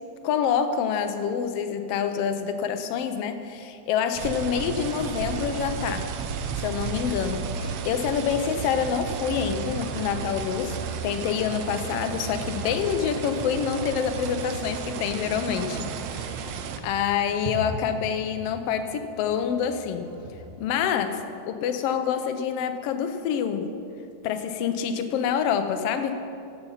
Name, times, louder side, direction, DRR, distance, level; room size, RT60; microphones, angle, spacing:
voice 1, 0.2-6.1 6.6-16.6 16.8-20.1 20.6-23.7 24.2-26.2, left 7 dB, 70° left, 8 dB, 1.5 m, -27 dB
sound 1, 4.1-20.7, right 1 dB, 50° right, 2.1 m, -44 dB
sound 2, 4.2-16.8, right 6 dB, 75° right, 1.8 m, -33 dB
16.0 x 6.9 x 5.6 m, 2.5 s
omnidirectional pair, 3.4 m